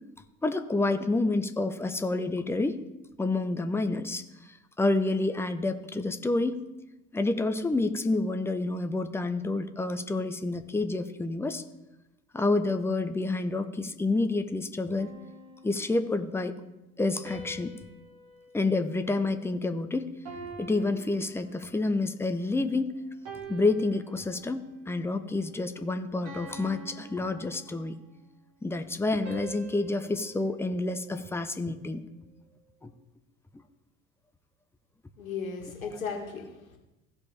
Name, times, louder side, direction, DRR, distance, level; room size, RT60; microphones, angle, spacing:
voice 1, 0.4-2.8 3.2-4.2 4.5-6.6 7.1-11.6 12.3-15.1 15.6-16.6 17.0-17.7 18.5-20.2 20.6-23.0 23.5-27.9 28.6-32.0 32.8-32.9, left 2 dB, 5° left, 8 dB, 0.7 m, -28 dB
sound 1, 15.0-16.3 17.3-19.8 20.3-22.0 22.5-22.8 23.3-24.8 25.3-25.6 26.3-28.2 29.3-31.6, right 3 dB, 55° right, 3.2 m, -46 dB
voice 2, 35.2-36.8, left 5 dB, 80° left, 3 dB, 1.7 m, -36 dB
16.0 x 5.3 x 3.5 m, 0.96 s
figure-of-eight pair, 70°, 40 cm